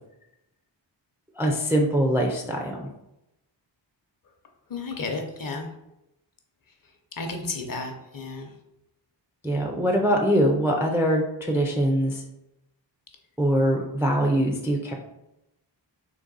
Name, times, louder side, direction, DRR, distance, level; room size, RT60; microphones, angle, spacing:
voice 1, 1.4-2.9 9.4-12.1 13.4-14.9, equal, 5° right, 1 dB, 0.3 m, -23 dB
voice 2, 4.7-5.7 7.2-8.5, left 3 dB, 50° left, 3 dB, 0.7 m, -32 dB
3.9 x 2.9 x 3.9 m, 0.89 s
wide cardioid pair, 155°, 44 cm